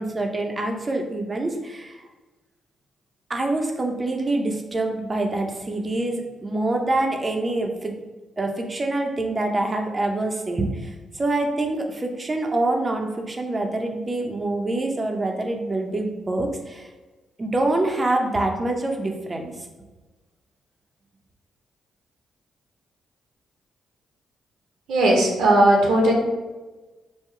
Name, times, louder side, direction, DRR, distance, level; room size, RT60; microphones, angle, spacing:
voice 1, 0.0-2.0 3.3-8.0 8.4-16.9 17.4-19.7, right 2 dB, 30° right, 2 dB, 0.7 m, -25 dB
voice 2, 24.9-26.1, right 1 dB, 80° right, -1 dB, 1.0 m, -17 dB
3.7 x 2.3 x 4.5 m, 1.2 s
supercardioid pair, 55°, 0 cm